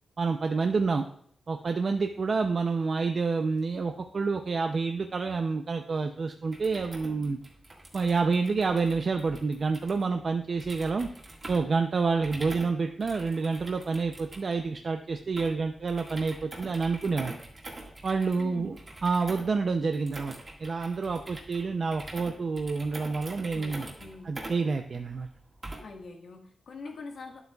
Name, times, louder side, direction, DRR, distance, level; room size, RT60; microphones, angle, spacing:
voice 1, 0.2-1.0 1.5-7.4 7.9-11.1 11.5-17.4 18.0-18.8 19.0-20.3 20.6-23.8 24.3-25.3, right 4 dB, 45° right, 5 dB, 0.5 m, -28 dB
sound 1, 6.4-26.0, right 2 dB, 30° right, 1.7 m, -45 dB
voice 2, 18.4-18.7 23.5-24.3 25.8-27.4, left 4 dB, 75° left, 2 dB, 1.5 m, -44 dB
11.5 x 7.9 x 2.3 m, 0.66 s
wide cardioid pair, 155°, 0 cm